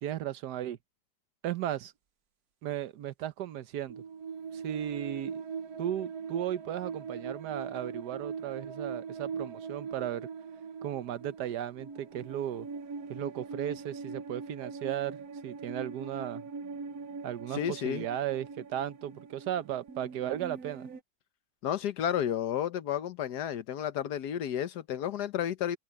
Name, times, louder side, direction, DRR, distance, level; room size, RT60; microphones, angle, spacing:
voice 1, 0.0-0.8 1.4-1.9 2.6-4.0 4.5-5.4 5.8-10.3 10.8-12.7 13.1-15.2 15.4-16.4 17.2-20.9, right 11 dB, 85° right, 1.4 m, -35 dB
sound 1, 3.9-21.0, right 5 dB, 70° right, 1.5 m, -41 dB
voice 2, 17.5-18.0 21.6-25.8, left 10 dB, 80° left, 1.5 m, -32 dB
open air
omnidirectional pair, 1.7 m